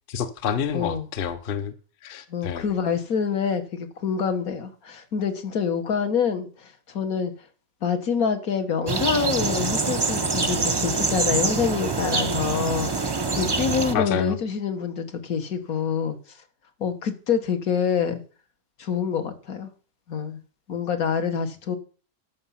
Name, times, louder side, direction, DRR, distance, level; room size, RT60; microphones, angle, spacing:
voice 1, 0.1-1.7 2.0-2.7 13.9-14.4, left 7 dB, 45° left, 0.8 m, -28 dB
voice 2, 0.7-1.1 2.3-7.3 7.8-16.2 16.8-18.2 18.8-19.7 20.1-20.4 20.7-21.8, left 6 dB, 75° left, 1.8 m, -26 dB
sound 1, 8.9-13.9, right 4 dB, 30° right, 0.4 m, -25 dB
12.5 x 6.0 x 5.7 m
omnidirectional pair, 1.5 m